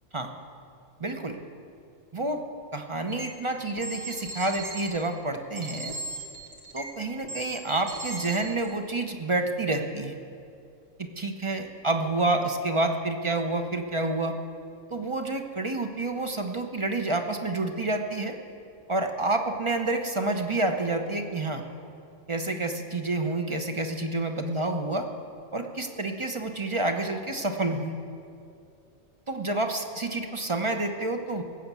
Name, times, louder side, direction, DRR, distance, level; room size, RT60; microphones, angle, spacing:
voice 1, 1.0-1.4 2.1-2.4 2.7-5.9 6.7-10.2 11.0-14.3 14.9-18.4 18.9-21.6 22.3-25.1 25.5-28.0 29.3-31.4, right 2 dB, 30° right, 5 dB, 0.7 m, -28 dB
sound 1, 3.1-3.3 3.8-4.9 5.6-6.9 7.2-8.7, right 2 dB, 75° right, 2.3 m, -37 dB
18.0 x 7.2 x 8.1 m, 2.5 s
omnidirectional pair, 1.3 m